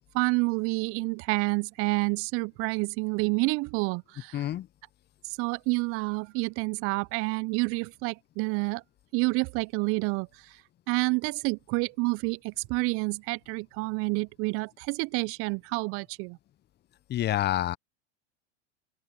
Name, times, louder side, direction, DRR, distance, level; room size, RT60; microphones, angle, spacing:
voice 1, 0.1-4.5 5.2-8.8 9.1-10.6 10.9-16.4, right 29 dB, 40° right, 0.6 m, -29 dB
voice 2, 4.3-4.7 17.1-17.8, left 12 dB, 30° left, 1.0 m, -27 dB
open air
hypercardioid pair, 95°, 35 cm